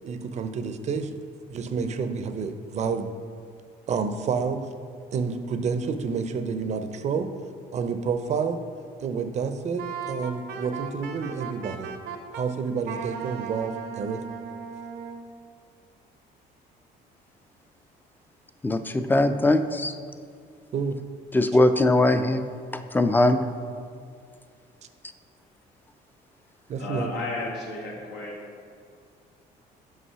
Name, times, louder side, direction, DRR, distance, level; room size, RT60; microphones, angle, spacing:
voice 1, 0.0-1.1 1.5-3.1 3.9-4.7 5.1-7.3 7.7-8.6 9.0-11.9 12.3-14.2 20.7-21.0 26.7-27.1, right 5 dB, 40° right, 9 dB, 0.5 m, -29 dB
Wind instrument woodwind instrument, 9.8-12.4 12.8-15.2, right 6 dB, 75° right, 0.7 m, -36 dB
voice 2, 18.6-19.9 21.3-22.4 22.7-23.4, left 2 dB, 10° left, 9 dB, 0.4 m, -21 dB
voice 3, 26.8-28.4, left 3 dB, 90° left, -2 dB, 1.6 m, -33 dB
5.6 x 5.3 x 5.5 m, 2.2 s
cardioid pair, 110°, 17 cm